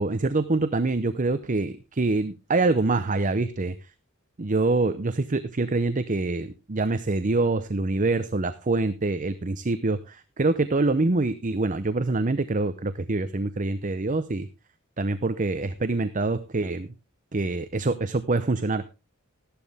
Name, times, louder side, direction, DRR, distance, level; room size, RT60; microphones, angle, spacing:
voice 1, 0.0-3.7 4.4-14.5 15.0-16.9 17.3-18.9, right 3 dB, 40° right, 11 dB, 0.7 m, -25 dB
14.0 x 11.5 x 3.5 m, 0.28 s
head